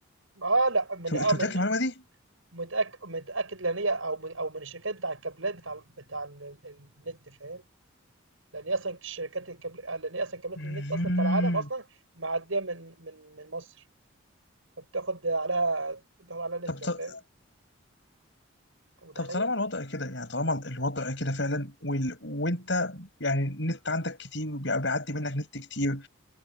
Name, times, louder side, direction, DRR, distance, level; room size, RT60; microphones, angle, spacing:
voice 1, 0.4-1.6 2.5-5.8 6.1-7.6 8.5-11.8 12.2-13.7 14.9-17.1 19.0-19.5, right 3 dB, 80° right, 6.6 m, -32 dB
voice 2, 1.1-1.9 10.6-11.6 16.7-17.2 19.2-26.1, left 1 dB, 60° left, 7.7 m, -30 dB
head